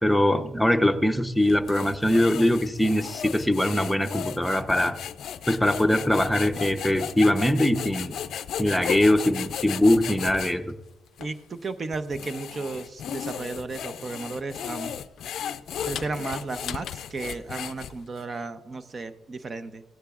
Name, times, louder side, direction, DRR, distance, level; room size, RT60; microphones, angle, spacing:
voice 1, 0.0-5.0 5.5-8.2 8.6-10.8, left 1 dB, 5° left, 6 dB, 0.8 m, -22 dB
sound 1, 1.4-10.6 11.2-11.3 11.9-18.2, left 9 dB, 70° left, 0.4 m, -35 dB
voice 2, 11.2-15.0 15.9-19.8, right 3 dB, 40° right, 11 dB, 0.7 m, -34 dB
16.5 x 10.0 x 2.4 m, 0.95 s
cardioid pair, 90°, 0 cm